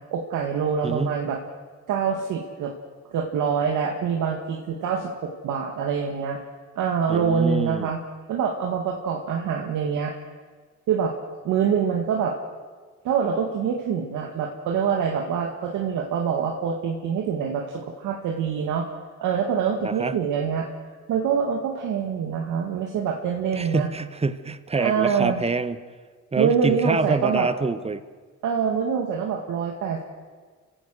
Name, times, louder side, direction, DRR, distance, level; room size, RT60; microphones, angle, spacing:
voice 1, 0.1-1.4 1.9-2.7 3.1-6.4 6.7-8.0 8.3-10.1 10.9-11.1 11.4-12.4 13.0-18.9 19.2-20.7 21.1-23.9 24.7-25.4 26.4-27.5 28.4-30.0, right 7 dB, 85° right, 1 dB, 2.1 m, -25 dB
voice 2, 0.8-1.2 7.1-7.9 19.8-20.1 23.6-25.8 26.3-28.0, right 3 dB, 20° right, 12 dB, 1.2 m, -26 dB
29.5 x 16.5 x 6.5 m, 1.5 s
cardioid pair, 90°, 30 cm